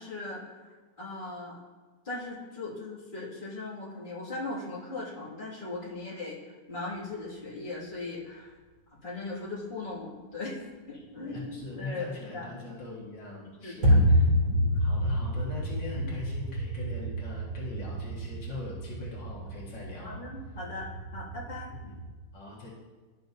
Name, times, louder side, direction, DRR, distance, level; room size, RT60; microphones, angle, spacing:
voice 1, 0.0-1.6 2.0-8.5 9.0-10.6 10.9-12.5 13.4-14.0 14.4-14.6 14.9-15.0 16.0-16.1 20.0-21.7, left 2 dB, 30° left, -8 dB, 2.3 m, -39 dB
voice 2, 11.1-20.2 21.8-21.9 22.3-22.7, left 3 dB, 80° left, -5 dB, 2.4 m, -41 dB
sound 1, 13.8-22.1, equal, 65° right, 3.6 m, -28 dB
12.0 x 6.7 x 2.7 m, 1.3 s
omnidirectional pair, 1.9 m